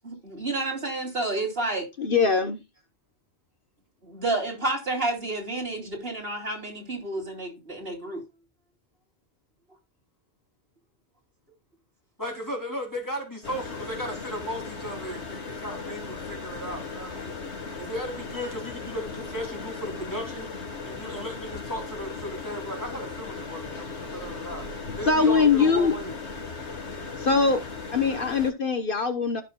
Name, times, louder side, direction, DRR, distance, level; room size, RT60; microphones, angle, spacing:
voice 1, 0.0-1.9 4.0-8.2, right 2 dB, 60° right, 3.5 m, -30 dB
voice 2, 2.0-2.6 25.0-25.9 27.2-27.6 27.9-29.4, left 5 dB, 55° left, 1.3 m, -22 dB
voice 3, 12.2-17.3 17.8-20.5 20.8-24.7 24.9-26.2, equal, 15° left, 3.1 m, -36 dB
sound 1, 13.4-28.5, left 4 dB, 75° left, 1.9 m, -37 dB
14.5 x 6.8 x 2.3 m
omnidirectional pair, 1.1 m